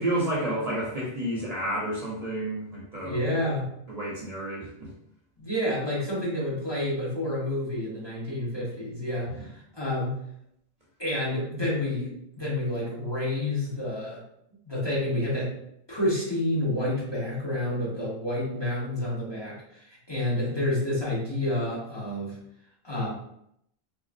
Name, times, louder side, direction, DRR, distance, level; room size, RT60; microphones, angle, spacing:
voice 1, 0.0-3.2 3.9-4.9 9.4-9.5, right 1 dB, 40° right, -5 dB, 0.7 m, -30 dB
voice 2, 3.0-3.7 5.4-10.2 11.0-12.1 12.4-14.2 14.6-15.5 15.9-22.4 22.8-23.1, left 1 dB, 25° left, -7 dB, 1.2 m, -29 dB
3.3 x 3.0 x 2.5 m, 0.75 s
omnidirectional pair, 1.1 m